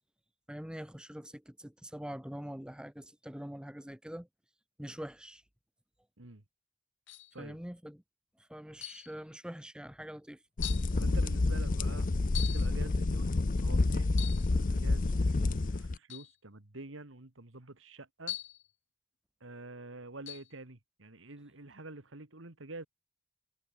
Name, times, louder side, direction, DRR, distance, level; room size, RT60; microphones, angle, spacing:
voice 1, 0.5-4.3 4.8-5.4 7.4-8.0 8.4-10.4, equal, 5° right, 0.8 m, -44 dB
sound 1, 7.1-7.4 8.8-9.1 9.9-10.0 10.6-10.9 12.3-12.7 14.1-14.5 16.1-16.3 18.3-18.7 20.3-20.5, left 15 dB, 70° left, 1.1 m, -41 dB
sound 2, 10.6-16.0, left 3 dB, 45° left, 0.6 m, -29 dB
voice 2, 10.9-18.4 19.4-22.9, right 2 dB, 85° right, 2.2 m, -48 dB
head